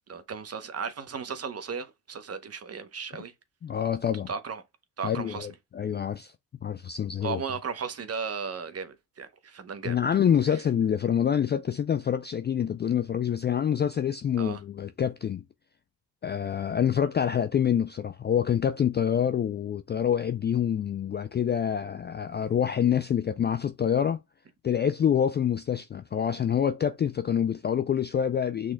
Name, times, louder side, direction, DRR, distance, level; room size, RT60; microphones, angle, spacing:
voice 1, 0.1-3.3 4.3-4.6 5.0-5.5 7.2-10.0 10.5-10.6 14.4-14.6, right 6 dB, 35° right, 0.9 m, -35 dB
voice 2, 3.6-4.3 5.0-6.3 6.6-7.4 9.8-15.4 16.2-24.2 24.6-28.7, left 8 dB, 25° left, 0.3 m, -26 dB
6.0 x 3.7 x 2.2 m
hypercardioid pair, 55°, 44 cm